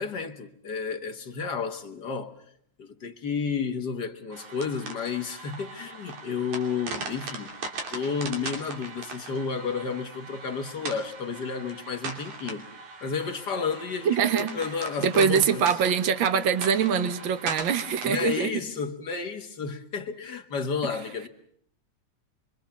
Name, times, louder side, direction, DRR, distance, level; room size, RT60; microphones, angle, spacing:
voice 1, 0.0-2.3 2.8-7.5 7.9-12.7 13.0-15.6 18.0-21.3, left 5 dB, 50° left, 1.4 m, -31 dB
sound 1, 4.3-18.4, right 4 dB, 80° right, 4.3 m, -39 dB
voice 2, 14.1-14.5 15.0-18.5, right 7 dB, 50° right, 1.9 m, -23 dB
25.0 x 24.0 x 7.1 m
omnidirectional pair, 3.3 m